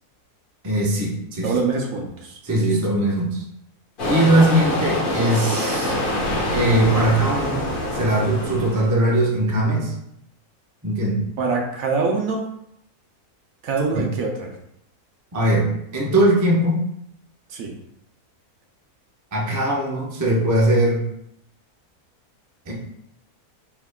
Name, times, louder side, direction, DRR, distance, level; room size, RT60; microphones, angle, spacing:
voice 1, 0.6-1.5 2.4-3.4 4.0-5.9 6.5-7.6 7.9-9.9 10.8-11.2 13.9-14.1 15.3-16.8 19.3-21.1 22.7-22.8, right 1 dB, 25° right, -2 dB, 0.4 m, -20 dB
voice 2, 1.4-2.7 11.4-12.4 13.6-14.5 17.5-17.7, right 4 dB, 70° right, 1 dB, 1.0 m, -24 dB
sound 1, 4.0-8.9, left 1 dB, 40° left, 0.9 m, -25 dB
4.6 x 3.5 x 2.2 m, 0.75 s
omnidirectional pair, 1.6 m